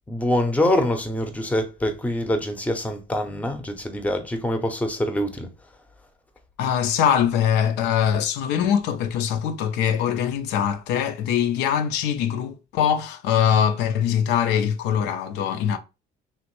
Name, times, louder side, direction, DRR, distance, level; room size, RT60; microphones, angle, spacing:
voice 1, 0.1-5.5, left 1 dB, 10° left, 0.6 m, -25 dB
voice 2, 6.6-15.8, left 9 dB, 85° left, 0.5 m, -22 dB
3.1 x 2.5 x 3.0 m
cardioid pair, 110°, 17 cm